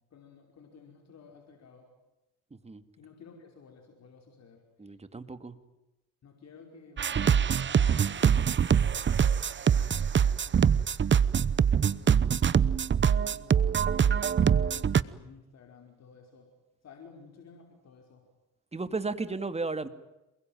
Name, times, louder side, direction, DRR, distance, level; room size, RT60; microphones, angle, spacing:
voice 1, 0.1-1.9 3.0-4.9 6.2-9.0 9.7-11.1 11.3-12.2 12.8-16.5 16.8-18.2, left 5 dB, 60° left, 3 dB, 5.2 m, -54 dB
voice 2, 4.8-5.6 18.7-19.9, right 3 dB, 20° right, 10 dB, 2.4 m, -34 dB
sound 1, 7.0-15.0, right 7 dB, 40° right, 1.0 m, -24 dB
28.5 x 21.5 x 9.3 m, 0.96 s
cardioid pair, 90°, 30 cm